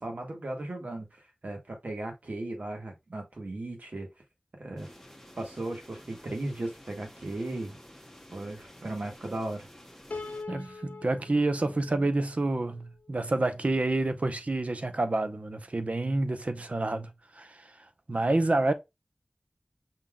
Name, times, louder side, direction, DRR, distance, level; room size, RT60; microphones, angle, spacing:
voice 1, 0.0-4.1 4.6-4.9 5.4-7.8 8.3-9.7, right 2 dB, 80° right, 1.6 m, -36 dB
sound 1, 4.8-10.4, equal, 10° left, 1.3 m, -51 dB
Piano, 10.1-13.3, left 3 dB, 80° left, 0.5 m, -43 dB
voice 2, 10.5-17.1 17.4-17.5 18.1-18.7, right 2 dB, 60° right, 0.7 m, -28 dB
5.5 x 3.7 x 2.3 m
wide cardioid pair, 45°, 3 cm